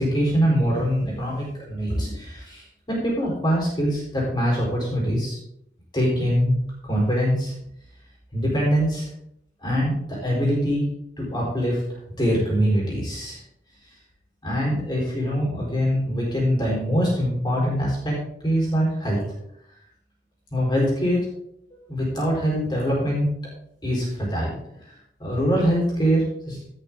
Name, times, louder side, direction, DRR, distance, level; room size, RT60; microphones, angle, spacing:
voice 1, 0.0-5.4 5.9-6.6 6.8-7.5 8.3-9.1 9.6-10.9 11.2-11.8 12.2-13.4 14.4-18.2 18.4-19.2 20.5-21.2 21.9-23.3 23.8-24.6 25.2-26.6, equal, 25° left, -4 dB, 4.2 m, -23 dB
16.0 x 6.6 x 3.8 m, 0.75 s
head